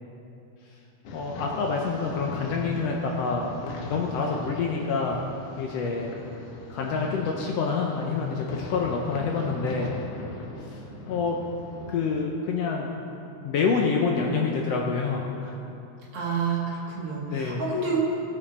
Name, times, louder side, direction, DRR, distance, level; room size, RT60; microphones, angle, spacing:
sound 1, 1.1-12.2, left 1 dB, 90° left, 2.6 m, -40 dB
voice 1, 1.1-3.5 3.9-5.2 5.6-6.1 6.7-9.9 10.7-10.8 11.1-11.4 11.9-12.9 13.4-15.6 17.3-17.6, left 5 dB, 70° left, 0 dB, 1.6 m, -27 dB
voice 2, 16.1-18.0, right 4 dB, 55° right, -5 dB, 2.6 m, -29 dB
18.0 x 6.8 x 4.3 m, 2.8 s
omnidirectional pair, 3.4 m